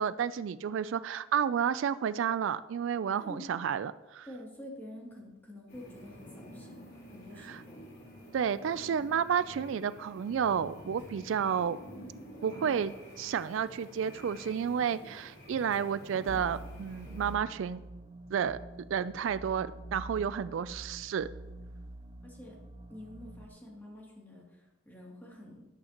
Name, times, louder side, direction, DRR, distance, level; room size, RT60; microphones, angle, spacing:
voice 1, 0.0-4.3 7.4-7.6 8.3-11.8 12.4-17.8 18.3-18.6 18.9-21.3, right 7 dB, 70° right, 15 dB, 0.3 m, -31 dB
voice 2, 3.1-3.5 4.2-6.8 7.1-7.8 22.2-22.6 22.9-25.7, left 1 dB, 10° left, -3 dB, 2.5 m, -48 dB
sound 1, 5.7-17.4, equal, 55° left, 3.8 m, -49 dB
Piano, 6.4-14.9, right 1 dB, 10° right, 1.6 m, -61 dB
sound 2, 16.3-23.5, right 1 dB, 25° right, 0.7 m, -46 dB
13.0 x 11.5 x 2.9 m, 1.1 s
head